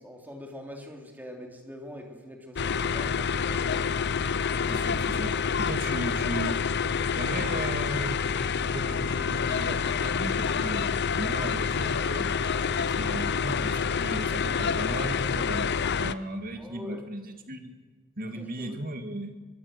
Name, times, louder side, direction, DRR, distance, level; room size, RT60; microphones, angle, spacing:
voice 1, 0.0-3.6 16.6-17.1 18.3-18.8, left 1 dB, 10° right, 2 dB, 3.6 m, -44 dB
sound 1, 2.6-16.1, left 6 dB, 50° left, 0.7 m, -27 dB
voice 2, 4.7-6.5 7.2-8.2 8.7-10.9 11.2-12.3 12.9-17.7 18.2-19.4, right 1 dB, 40° right, 6 dB, 2.3 m, -36 dB
23.5 x 23.5 x 6.8 m, 1.4 s
head